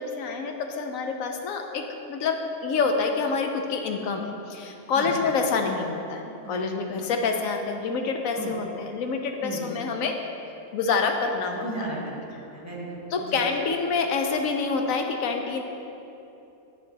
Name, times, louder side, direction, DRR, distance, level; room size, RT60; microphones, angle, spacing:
voice 1, 0.0-10.2 10.7-11.9 13.1-15.6, left 4 dB, 70° left, 4 dB, 1.0 m, -27 dB
voice 2, 11.5-13.0 13.3-13.4, right 1 dB, 10° right, -6 dB, 1.4 m, -35 dB
11.0 x 4.7 x 3.9 m, 2.8 s
omnidirectional pair, 1.6 m